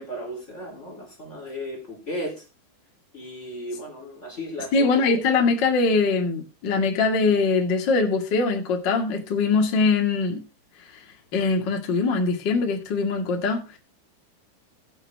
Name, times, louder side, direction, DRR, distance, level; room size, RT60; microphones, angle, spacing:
voice 1, 0.0-2.4 3.1-4.9, equal, 15° left, 2.9 m, -35 dB
voice 2, 4.7-10.4 11.3-13.6, left 4 dB, 60° left, 1.1 m, -22 dB
18.5 x 6.5 x 3.6 m
omnidirectional pair, 5.8 m